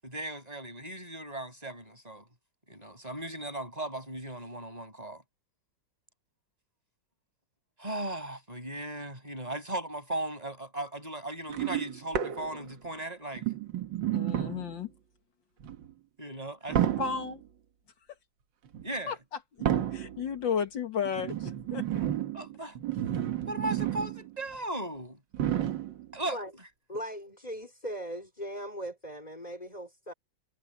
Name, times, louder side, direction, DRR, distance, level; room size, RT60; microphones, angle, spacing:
voice 1, 0.0-2.3 2.7-5.2 7.8-13.5 16.2-17.0 18.8-19.2 22.3-22.8 23.5-25.2 26.1-26.4, right 1 dB, 20° right, 7.4 m, -37 dB
sound 1, 11.5-12.9 13.3-14.8 15.6-15.9 16.7-17.4 18.7-18.9 19.6-20.3 21.1-24.3 24.5-24.6 25.3-26.1 27.0-27.1, right 11 dB, 75° right, 1.9 m, -31 dB
voice 2, 14.1-14.9 17.0-17.4 19.1-19.2 19.7-21.8, left 6 dB, 80° left, 2.5 m, -33 dB
voice 3, 26.9-30.1, equal, 20° left, 4.5 m, -39 dB
omnidirectional pair, 2.0 m